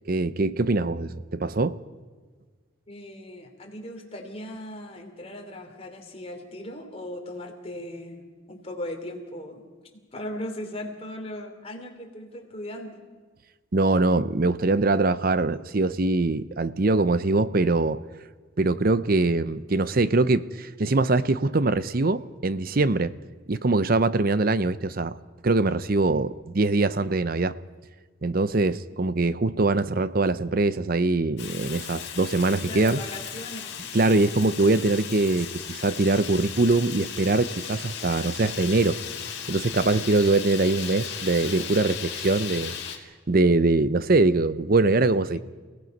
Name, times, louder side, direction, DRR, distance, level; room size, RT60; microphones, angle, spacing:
voice 1, 0.1-1.8 13.7-18.0 18.6-23.1 23.5-25.2 25.4-27.6 28.2-33.0 33.9-39.0 39.5-42.7 43.3-45.4, right 2 dB, 45° right, 15 dB, 0.6 m, -23 dB
voice 2, 2.9-9.6 10.1-13.0 32.6-33.7 45.3-45.4, left 1 dB, 30° left, 2 dB, 2.9 m, -38 dB
Fire, 31.4-43.0, left 8 dB, 55° left, 2.4 m, -36 dB
29.0 x 17.5 x 5.4 m, 1.4 s
head